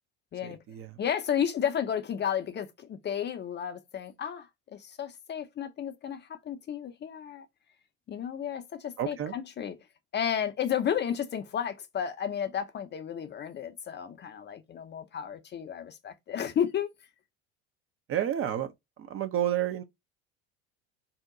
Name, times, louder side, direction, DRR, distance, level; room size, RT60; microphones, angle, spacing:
voice 1, 0.4-1.0 9.0-9.3 18.1-18.7 19.0-19.8, right 11 dB, 40° right, 0.6 m, -30 dB
voice 2, 1.0-7.5 8.1-9.8 10.1-16.9, left 8 dB, 30° left, 0.5 m, -32 dB
2.7 x 2.1 x 3.7 m
hypercardioid pair, 75°, 33 cm